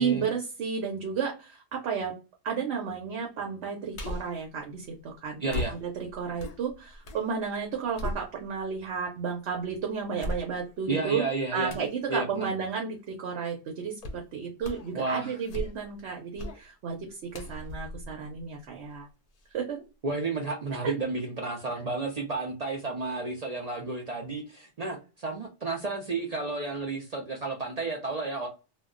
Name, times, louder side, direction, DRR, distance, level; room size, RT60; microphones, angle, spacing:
voice 1, 0.0-2.1 2.4-11.2 11.5-19.1 19.5-19.8 20.8-20.9, right 6 dB, 70° right, 1.0 m, -32 dB
sound 1, 3.9-4.4 5.5-7.3 7.6-8.7 9.3-9.4 10.2-10.9 11.7-12.0 14.0-14.3 14.6-15.0 15.4-16.0 16.4-16.6 17.3-19.0 19.4-19.5, left 1 dB, 50° left, 0.5 m, -37 dB
voice 2, 5.4-5.7 10.9-11.7 12.1-12.5 14.9-15.3 20.0-28.5, right 3 dB, 50° right, 0.5 m, -32 dB
2.3 x 2.2 x 3.6 m
omnidirectional pair, 1.2 m